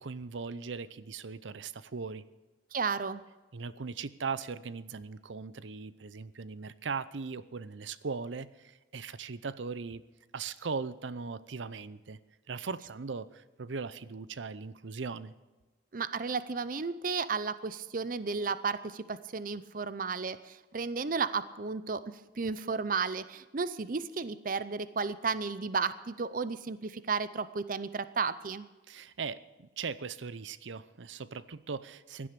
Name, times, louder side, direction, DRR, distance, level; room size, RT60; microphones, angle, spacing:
voice 1, 0.0-2.2 3.5-10.0 10.3-12.2 12.5-15.3 28.9-32.3, right 5 dB, 85° right, 16 dB, 0.7 m, -39 dB
voice 2, 2.7-3.2 15.9-22.0 22.4-28.7, right 5 dB, 45° right, 15 dB, 0.6 m, -33 dB
16.0 x 11.0 x 6.8 m, 1.2 s
head